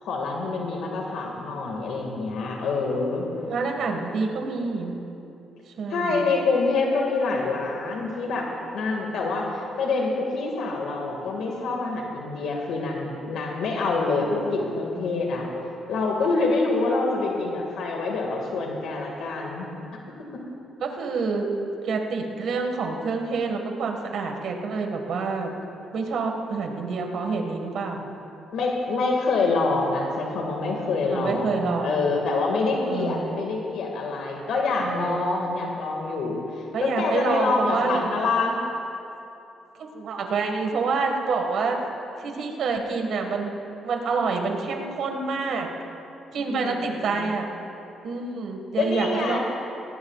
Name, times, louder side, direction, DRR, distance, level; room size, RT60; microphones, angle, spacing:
voice 1, 0.0-3.3 5.9-8.5 8.7-15.5 15.9-19.7 28.5-38.6 46.5-47.3 48.8-49.4, left 3 dB, 80° left, 0 dB, 1.9 m, -26 dB
voice 2, 3.5-5.0 5.8-6.2 20.8-21.5 21.8-25.5 25.9-28.1 31.0-32.1 32.9-33.4 34.8-35.2 36.7-38.1 39.8-41.9 42.2-43.5 43.8-45.7 46.3-47.5 48.0-49.4, right 4 dB, 70° right, 3 dB, 1.7 m, -27 dB
19.0 x 18.0 x 2.4 m, 2.8 s
cardioid pair, 90°, 0 cm